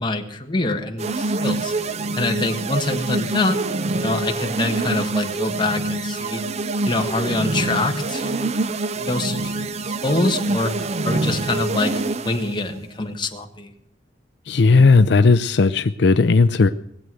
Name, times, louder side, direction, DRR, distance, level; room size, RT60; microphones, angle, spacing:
voice 1, 0.0-1.7 2.1-3.6 3.9-6.4 6.8-8.5 8.9-13.7, left 2 dB, 25° left, 4 dB, 1.7 m, -25 dB
sound 1, 1.0-12.6, right 2 dB, 35° right, 0.5 m, -25 dB
voice 2, 14.5-16.7, left 4 dB, 65° left, 12 dB, 0.5 m, -15 dB
19.5 x 8.1 x 7.8 m, 0.78 s
head